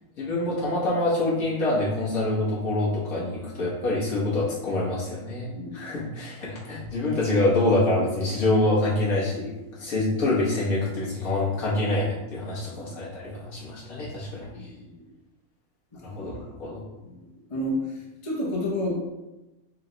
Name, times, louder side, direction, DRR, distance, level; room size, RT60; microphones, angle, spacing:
voice 1, 0.2-14.5 16.0-16.3 16.6-16.8, left 2 dB, 70° left, -6 dB, 1.6 m, -26 dB
voice 2, 5.5-5.9 12.8-13.0 14.5-15.1 15.9-16.3 17.0-17.1 17.5-17.8 18.2-18.9, left 1 dB, 30° left, -2 dB, 0.6 m, -31 dB
4.0 x 2.2 x 3.8 m, 1.0 s
omnidirectional pair, 1.6 m